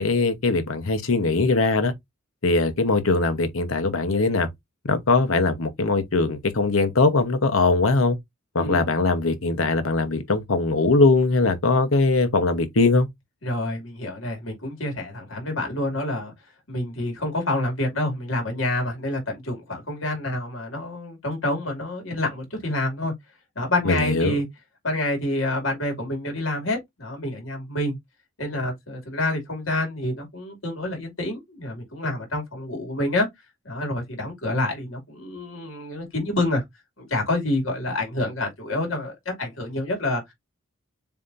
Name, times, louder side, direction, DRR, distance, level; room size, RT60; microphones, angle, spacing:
voice 1, 0.0-1.9 2.4-4.5 4.8-8.2 8.5-13.1 23.8-24.4, left 3 dB, 90° left, 1.0 m, -21 dB
voice 2, 8.6-8.9 13.4-16.3 16.7-23.1 23.6-24.5 24.8-28.0 28.4-33.3 33.6-36.6 37.0-40.3, left 1 dB, 70° left, 2.6 m, -27 dB
7.1 x 2.9 x 2.6 m
head